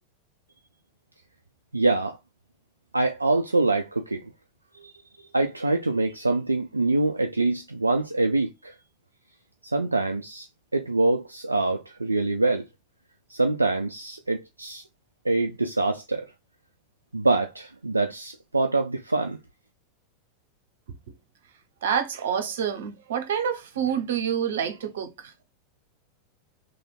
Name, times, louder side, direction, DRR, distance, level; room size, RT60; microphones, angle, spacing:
voice 1, 1.7-2.2 2.9-4.3 4.8-4.9 5.3-8.7 9.6-10.5 10.7-12.7 13.3-14.8 15.2-16.3 17.1-19.4, right 2 dB, 85° right, 0.4 m, -25 dB
voice 2, 21.8-25.3, right 8 dB, 65° right, 0.9 m, -27 dB
3.4 x 3.1 x 4.0 m
figure-of-eight pair, 85°, 0 cm